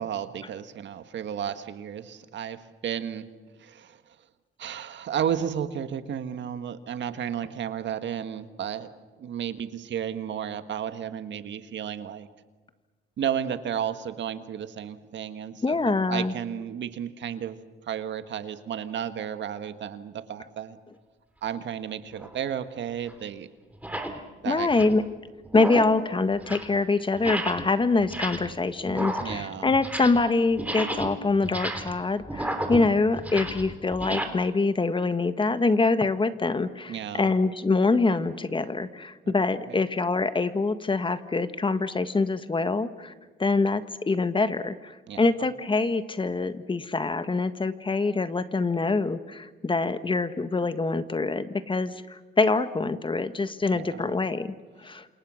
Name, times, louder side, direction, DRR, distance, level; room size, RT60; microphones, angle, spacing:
voice 1, 0.0-3.3 3.6-4.2 4.6-8.9 9.2-12.3 13.2-17.6 17.8-20.8 21.4-23.5 24.4-24.7 29.2-29.7 36.9-37.3 39.5-39.8 45.1-45.5 53.7-54.2, right 9 dB, 65° right, 10 dB, 1.6 m, -33 dB
voice 2, 15.6-16.3 24.4-25.0 25.5-43.1 43.4-44.9 45.2-55.1, left 3 dB, 25° left, 11 dB, 1.4 m, -25 dB
sound 1, 22.2-22.4 23.1-23.2 23.7-24.2 24.6-25.0 25.4-26.0 26.3-26.8 27.2-27.7 28.0-28.6 28.9-30.3 30.5-34.2, right 1 dB, 5° right, 3.4 m, -33 dB
28.5 x 27.5 x 6.4 m, 1.3 s
cardioid pair, 90°, 20 cm